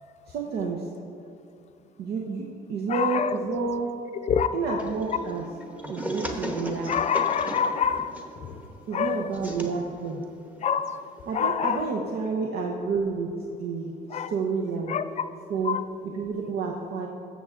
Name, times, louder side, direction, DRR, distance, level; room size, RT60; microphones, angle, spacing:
voice 1, 0.3-0.9 2.0-3.9 4.5-5.5 5.9-6.9 8.9-10.2 11.2-15.0 15.5-17.1, right 4 dB, 70° right, 0 dB, 0.9 m, -30 dB
voice 2, 2.9-3.3 4.3-4.8 6.9-8.1 8.9-9.3 10.6-11.0 11.3-11.8 14.1-14.3 14.9-15.0 15.6-15.8, left 7 dB, 40° left, 10 dB, 0.5 m, -26 dB
sound 1, 4.8-11.4, right 1 dB, 10° right, 1.0 m, -37 dB
13.5 x 7.0 x 3.7 m, 2.7 s
cardioid pair, 110°, 17 cm